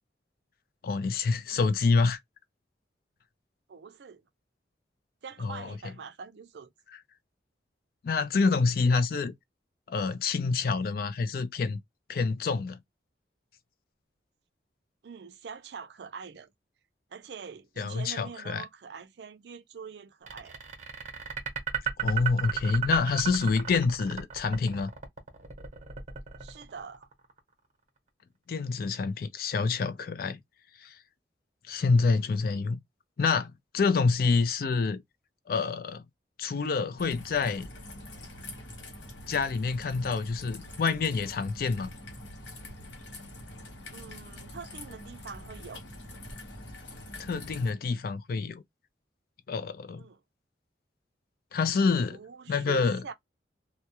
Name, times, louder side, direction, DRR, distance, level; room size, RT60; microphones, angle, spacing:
voice 1, 0.8-2.2 5.4-5.7 8.0-9.3 9.9-11.8 12.1-12.8 17.8-18.7 22.0-24.9 28.5-30.4 30.8-30.9 31.7-32.8 33.2-35.0 35.5-36.0 36.4-37.7 39.3-41.9 47.2-48.6 49.5-50.0 51.5-52.2 52.5-53.0, left 4 dB, 55° left, 0.3 m, -27 dB
voice 2, 3.7-4.2 5.2-6.7 15.0-16.5 17.1-20.6 26.4-27.1 43.9-45.8 50.0-50.2 51.9-53.1, right 5 dB, 70° right, 0.4 m, -44 dB
sound 1, 20.3-27.4, right 9 dB, 45° right, 0.8 m, -34 dB
Raindrop / Trickle dribble, 37.0-47.7, left 1 dB, 90° left, 0.9 m, -45 dB
2.2 x 2.1 x 2.8 m
head